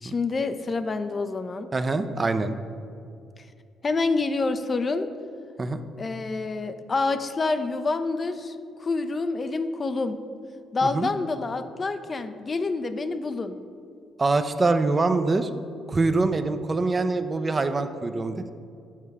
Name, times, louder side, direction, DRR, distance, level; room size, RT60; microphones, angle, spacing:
voice 1, 0.0-1.7 3.8-5.1 6.0-10.2 10.7-13.6, left 3 dB, 40° left, 10 dB, 0.5 m, -27 dB
voice 2, 1.7-2.5 5.6-5.8 10.8-11.1 14.2-15.5 15.9-18.5, right 3 dB, 35° right, 9 dB, 0.5 m, -24 dB
7.4 x 5.5 x 4.7 m, 2.4 s
supercardioid pair, 55°, 0 cm